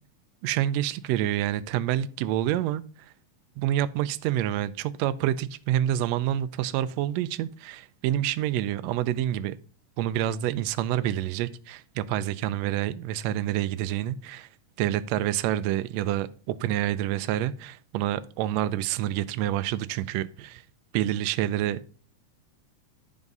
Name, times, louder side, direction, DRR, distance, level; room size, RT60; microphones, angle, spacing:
voice 1, 0.4-3.1 3.6-9.5 10.0-14.5 14.8-20.6 20.9-21.9, right 12 dB, 85° right, 1.5 m, -28 dB
10.5 x 3.6 x 5.3 m
omnidirectional pair, 3.6 m